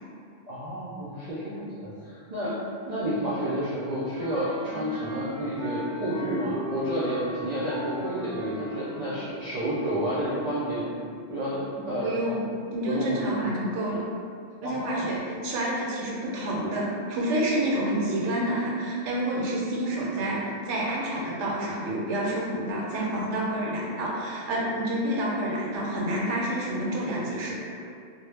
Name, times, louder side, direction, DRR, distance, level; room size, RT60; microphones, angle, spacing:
voice 1, 0.5-2.6 2.9-10.9 11.3-12.1 12.9-13.2 14.6-15.1, right 1 dB, 65° right, -10 dB, 0.4 m, -30 dB
Wind instrument woodwind instrument, 4.1-9.4, left 1 dB, 5° right, 0.6 m, -38 dB
voice 2, 11.7-14.0 14.6-27.9, right 1 dB, 85° right, -4 dB, 0.9 m, -29 dB
2.2 x 2.0 x 3.1 m, 2.2 s
omnidirectional pair, 1.2 m